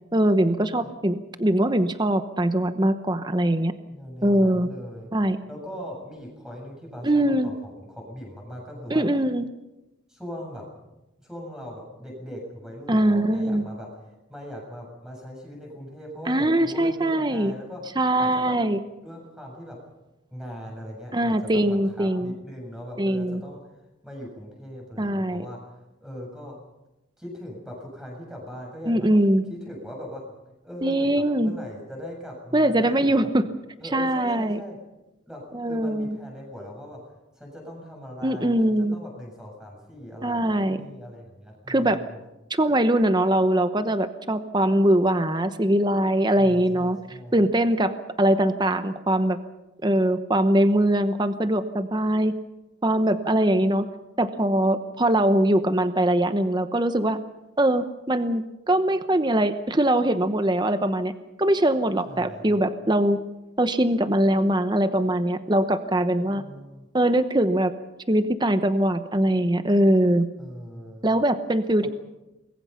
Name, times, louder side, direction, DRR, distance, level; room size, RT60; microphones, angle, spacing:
voice 1, 0.1-3.7 4.2-4.7 5.1-5.4 7.0-7.5 8.9-9.4 12.9-13.6 16.3-17.5 18.0-18.8 21.1-22.3 23.0-23.4 25.0-25.4 28.9-29.4 30.8-31.5 32.5-33.5 33.9-34.6 35.5-36.2 38.2-39.0 40.2-40.8 41.7-42.0 42.5-47.0 47.3-47.9 48.2-49.4 49.8-52.3 52.8-53.9 54.2-57.2 57.6-61.1 61.4-63.2 63.6-66.4 66.9-67.7 68.1-70.3 71.0-71.9, right 1 dB, 20° right, 10 dB, 0.9 m, -22 dB
voice 2, 3.9-5.1 5.5-9.0 10.1-10.7 11.2-13.9 14.3-17.8 18.2-18.6 19.0-19.8 20.3-23.6 24.0-25.6 26.0-26.5 27.2-29.1 29.5-30.2 30.6-33.3 33.8-34.8 35.3-37.0 37.4-40.4 40.7-42.2 46.4-47.4 62.1-62.6 66.2-66.9 70.4-71.1 71.8-71.9, equal, 5° right, 0 dB, 7.5 m, -40 dB
28.0 x 21.5 x 5.7 m, 0.99 s
head